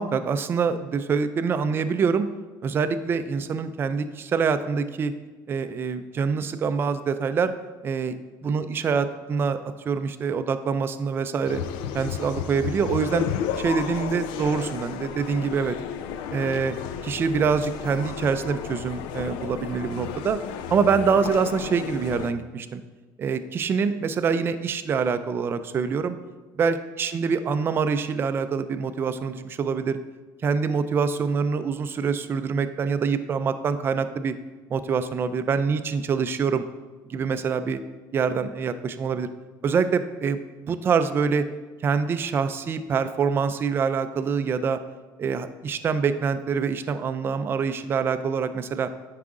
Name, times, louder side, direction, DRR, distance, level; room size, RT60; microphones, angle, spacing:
voice 1, 0.0-2.3 2.6-5.1 5.5-7.5 7.8-8.2 8.4-11.6 11.9-13.3 13.6-15.8 16.3-16.8 17.0-20.4 20.7-22.8 23.2-26.2 26.6-30.0 30.4-34.3 34.7-36.6 37.1-37.8 38.1-39.3 39.6-41.5 41.8-44.8 45.2-48.9, right 5 dB, 30° right, 10 dB, 0.4 m, -25 dB
sound 1, 11.4-22.3, left 9 dB, 85° left, 0.5 m, -33 dB
9.6 x 4.8 x 3.7 m, 1.3 s
cardioid pair, 150°, 8 cm